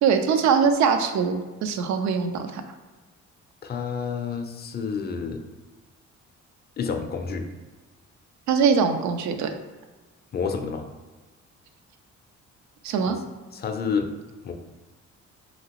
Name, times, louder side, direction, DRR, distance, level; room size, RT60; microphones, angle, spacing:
voice 1, 0.0-2.6 8.5-9.5 12.8-13.2, right 6 dB, 70° right, 7 dB, 0.5 m, -22 dB
voice 2, 3.6-5.4 6.8-7.5 10.3-10.8 13.1-13.2 13.5-14.1 14.4-14.5, left 6 dB, 35° left, 5 dB, 0.4 m, -29 dB
2.9 x 2.8 x 2.9 m, 1.2 s
cardioid pair, 90°, 30 cm